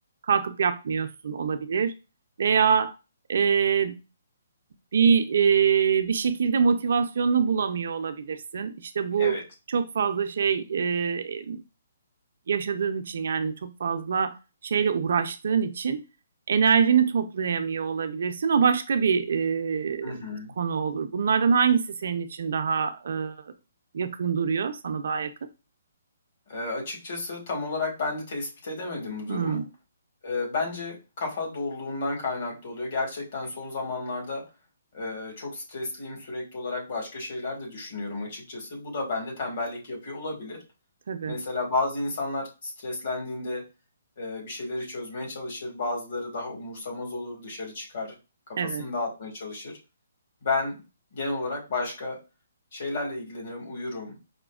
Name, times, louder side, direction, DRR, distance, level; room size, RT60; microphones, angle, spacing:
voice 1, 0.3-1.9 2.4-2.9 3.3-4.0 4.9-9.4 9.7-11.6 12.5-14.4 14.6-16.0 16.5-20.2 20.6-23.4 23.9-25.3 29.3-29.6 41.1-41.4 48.6-48.8, right 6 dB, 60° right, 9 dB, 0.4 m, -24 dB
voice 2, 20.0-20.5 26.5-29.6 30.2-34.4 34.9-40.6 41.3-43.6 44.2-48.1 48.5-49.7 50.4-50.8 51.1-52.2 52.7-54.1, left 3 dB, 50° left, 0 dB, 1.6 m, -32 dB
4.9 x 2.1 x 2.3 m, 0.29 s
hypercardioid pair, 160°, 0 cm